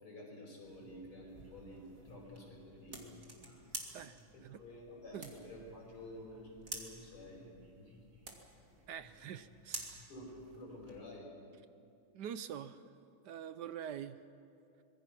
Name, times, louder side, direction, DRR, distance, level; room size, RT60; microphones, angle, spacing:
voice 1, 0.0-3.1 4.6-7.5 7.7-7.9 10.1-11.3, left 1 dB, 85° left, -1 dB, 6.3 m, -50 dB
sound 1, 0.6-11.0, right 2 dB, 40° right, 2.8 m, -51 dB
voice 2, 8.9-10.1 12.1-12.8 13.2-14.2, right 9 dB, 65° right, 12 dB, 1.1 m, -45 dB
25.0 x 21.5 x 6.0 m, 2.5 s
omnidirectional pair, 2.3 m